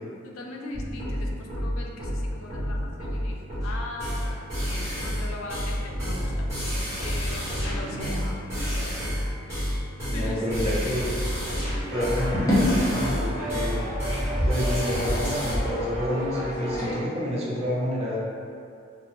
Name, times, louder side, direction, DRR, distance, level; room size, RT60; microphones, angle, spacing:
voice 1, 0.2-6.5 7.0-8.8 10.1-11.1, left 2 dB, 80° left, 0 dB, 0.4 m, -39 dB
sound 1, 0.7-15.5, equal, 15° right, 1.0 m, -29 dB
voice 2, 10.1-11.1 11.9-13.8 14.5-18.2, equal, 30° right, -6 dB, 0.5 m, -29 dB
sound 2, 11.9-17.0, equal, 15° left, 0.5 m, -28 dB
2.5 x 2.1 x 3.0 m, 2.3 s
head